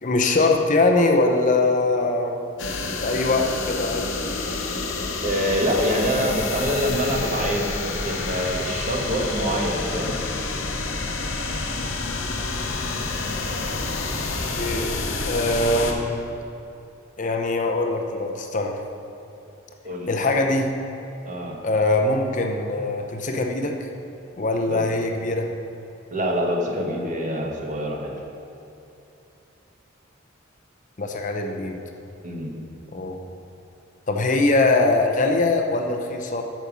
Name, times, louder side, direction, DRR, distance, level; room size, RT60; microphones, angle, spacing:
voice 1, 0.0-2.4 3.0-4.2 14.6-15.0 15.3-16.2 17.2-18.8 20.1-20.7 21.6-23.9 24.3-25.5 31.0-31.8 32.9-33.2 34.1-36.4, left 2 dB, 40° left, 3 dB, 0.7 m, -22 dB
sound 1, 2.6-15.9, left 3 dB, 70° left, 1.0 m, -28 dB
voice 2, 5.2-10.2 19.8-20.1 21.2-21.6 24.7-24.9 26.1-28.1 32.2-32.5, equal, 40° right, 0 dB, 1.3 m, -25 dB
8.8 x 6.9 x 6.1 m, 2.9 s
head